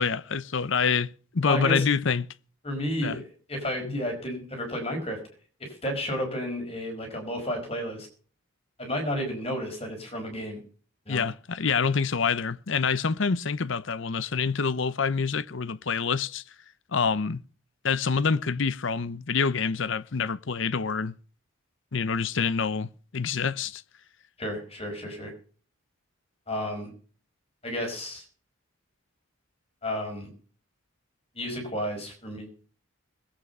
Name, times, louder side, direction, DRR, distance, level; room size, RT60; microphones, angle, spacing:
voice 1, 0.0-2.3 3.0-3.2 11.1-16.4 16.9-17.4 17.8-21.1 21.9-23.8, left 5 dB, 60° left, 0.7 m, -26 dB
voice 2, 1.4-1.8 2.6-3.2 3.5-5.2 5.6-8.1 8.8-10.6 11.1-11.3 24.4-25.3 26.5-26.9 27.6-28.2 29.8-30.3 31.3-32.5, equal, 25° left, 4.9 m, -31 dB
20.5 x 8.6 x 5.5 m
head